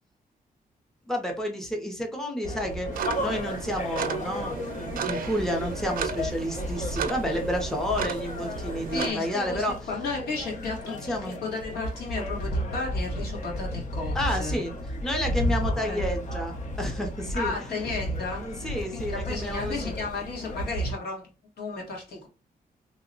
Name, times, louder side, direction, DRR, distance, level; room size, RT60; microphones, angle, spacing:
voice 1, 1.1-9.8 10.6-11.4 14.1-14.7 15.0-17.8 18.4-19.9, equal, 5° left, 0.6 m, -31 dB
sound 1, 2.4-20.9, equal, 50° left, 0.7 m, -33 dB
sound 2, 2.9-9.1, right 7 dB, 65° right, 0.4 m, -34 dB
voice 2, 8.9-14.6 15.7-16.0 17.3-18.5 18.9-21.3 21.6-22.3, left 3 dB, 90° left, 1.3 m, -34 dB
2.9 x 2.1 x 3.8 m
wide cardioid pair, 165°, 16 cm